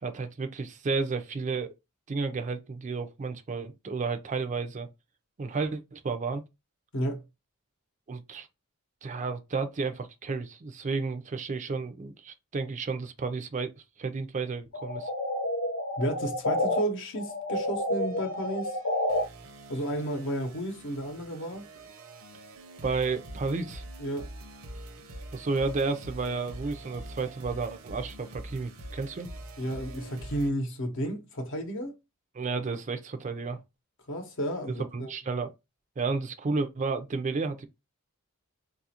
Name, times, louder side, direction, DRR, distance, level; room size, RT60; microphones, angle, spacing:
voice 1, 0.0-1.7 2.1-4.9 5.4-6.4 8.1-8.5 9.0-13.7 14.0-15.1 22.8-23.8 25.3-29.3 32.3-33.6 34.9-35.5 36.0-37.7, right 4 dB, 35° right, 0.4 m, -32 dB
sound 1, 14.7-16.8 17.2-19.2, left 1 dB, 85° left, 0.9 m, -29 dB
voice 2, 16.0-18.8 19.7-21.7 24.0-24.3 29.6-31.9 34.1-35.1, right 1 dB, 60° left, 0.8 m, -32 dB
sound 2, 17.9-30.5, right 1 dB, 70° right, 0.7 m, -45 dB
3.9 x 2.4 x 2.8 m
head